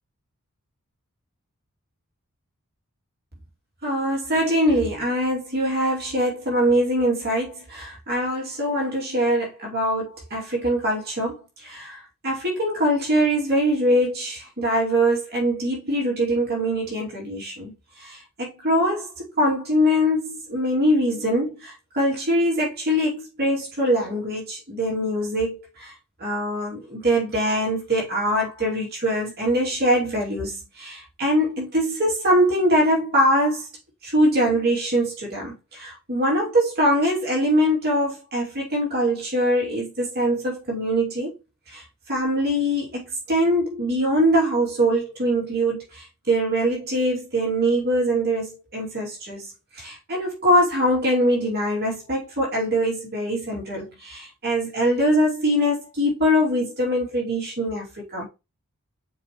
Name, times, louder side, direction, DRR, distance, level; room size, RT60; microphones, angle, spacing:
voice 1, 3.8-25.9 26.2-33.7 34.0-41.3 41.7-58.3, equal, 45° right, 2.6 m, -23 dB
7.3 x 4.6 x 3.0 m
head